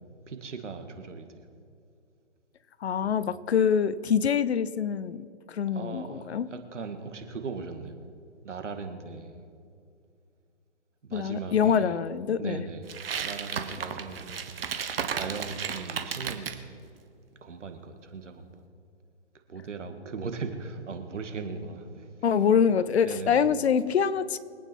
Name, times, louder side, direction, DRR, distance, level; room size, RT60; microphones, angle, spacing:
voice 1, 0.3-1.5 3.0-3.3 5.7-8.0 8.4-9.4 11.0-12.0 12.4-14.5 15.2-16.5 17.4-18.6 19.5-22.1 23.0-23.5, right 4 dB, 85° right, 6 dB, 2.1 m, -38 dB
voice 2, 2.8-6.5 11.1-12.6 22.2-24.4, left 7 dB, 65° left, 16 dB, 0.8 m, -25 dB
sound 1, 12.9-16.6, right 7 dB, 55° right, 1.3 m, -33 dB
24.0 x 9.1 x 4.5 m, 2.4 s
hypercardioid pair, 160°, 35 cm